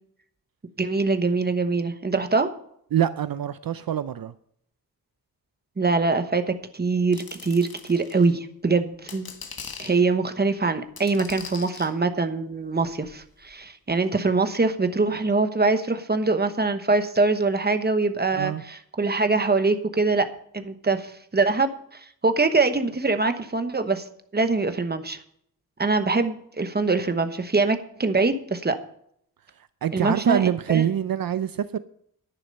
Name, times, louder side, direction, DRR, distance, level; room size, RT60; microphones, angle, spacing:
voice 1, 0.8-2.5 5.8-9.3 9.8-20.3 20.5-24.0 24.3-25.2 25.8-28.8 29.9-30.4 30.7-30.8, right 3 dB, 25° right, 1.0 m, -23 dB
voice 2, 2.9-4.3 18.3-18.6 29.6-31.8, right 10 dB, 70° right, 0.5 m, -25 dB
sound 1, 7.1-8.3 8.9-10.0 11.0-11.9 12.8-13.5 14.0-14.1, left 6 dB, 70° left, 1.5 m, -41 dB
11.0 x 10.5 x 5.4 m
wide cardioid pair, 155°, 37 cm